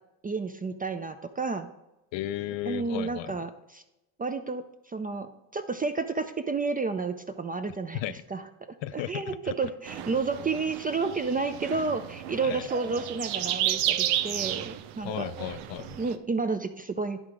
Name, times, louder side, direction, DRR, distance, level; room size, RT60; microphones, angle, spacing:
voice 1, 0.2-1.7 2.7-3.8 4.2-15.3 16.0-17.2, right 4 dB, 20° right, 0.3 m, -31 dB
voice 2, 2.1-3.3 7.9-8.1 8.8-9.4 12.4-12.6 15.0-16.0, left 13 dB, 65° left, 0.5 m, -34 dB
sound 1, 9.9-16.2, right 12 dB, 90° right, 0.7 m, -32 dB
10.5 x 3.7 x 4.7 m
cardioid pair, 90°, 49 cm